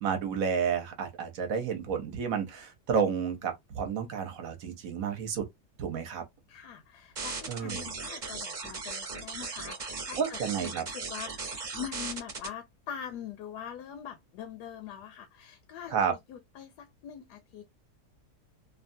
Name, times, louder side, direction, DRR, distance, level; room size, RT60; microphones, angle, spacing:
voice 1, 0.0-5.4 5.8-6.2 7.5-7.9 10.2-10.8 15.9-16.1, right 6 dB, 60° right, 1.1 m, -31 dB
voice 2, 6.5-17.7, left 9 dB, 80° left, 1.1 m, -43 dB
sound 1, 7.2-12.5, right 4 dB, 35° right, 0.9 m, -37 dB
2.8 x 2.3 x 2.5 m
omnidirectional pair, 1.7 m